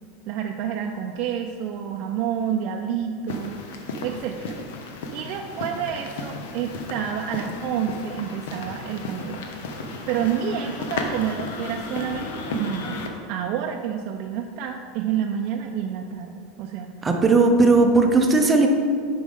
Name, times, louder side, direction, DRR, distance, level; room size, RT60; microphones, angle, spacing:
voice 1, 0.3-3.6 4.0-4.6 5.1-9.4 10.1-17.0, right 8 dB, 50° right, 2 dB, 0.4 m, -29 dB
sound 1, 3.3-13.1, left 3 dB, 80° left, 0.8 m, -34 dB
voice 2, 17.0-18.7, right 3 dB, 15° right, 3 dB, 0.7 m, -17 dB
8.1 x 5.1 x 3.7 m, 2.1 s
supercardioid pair, 150°, 0 cm